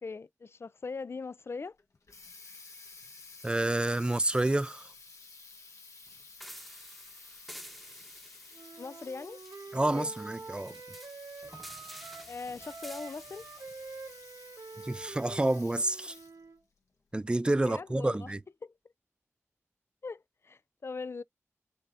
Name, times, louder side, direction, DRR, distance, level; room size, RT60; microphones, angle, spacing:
voice 1, 0.0-1.7 8.8-9.4 9.9-10.1 12.3-13.4 17.6-18.3 18.6-18.7 20.0-21.2, left 4 dB, 55° left, 0.3 m, -40 dB
Water tap faucet, 1.8-16.5, left 4 dB, 80° left, 1.3 m, -52 dB
voice 2, 3.4-4.9 9.7-10.7 14.8-16.2 17.1-18.4, right 1 dB, 20° right, 0.4 m, -29 dB
sound 1, 6.4-15.3, equal, ahead, 0.9 m, -51 dB
Wind instrument woodwind instrument, 8.5-12.3 12.6-16.6, right 4 dB, 90° right, 2.1 m, -47 dB
5.6 x 3.6 x 2.5 m
wide cardioid pair, 65°, 5 cm